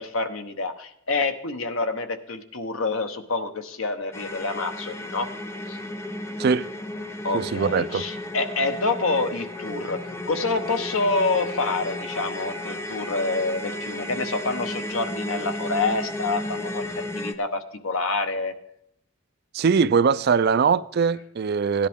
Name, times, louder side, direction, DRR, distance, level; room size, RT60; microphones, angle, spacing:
voice 1, 0.0-5.3 5.7-5.8 7.2-16.8 17.1-18.5, left 3 dB, 75° left, 1.0 m, -27 dB
sound 1, 4.1-17.3, left 1 dB, 15° left, 0.7 m, -33 dB
voice 2, 7.3-8.1 19.5-21.9, right 5 dB, 50° right, 0.4 m, -21 dB
16.0 x 10.5 x 3.6 m
head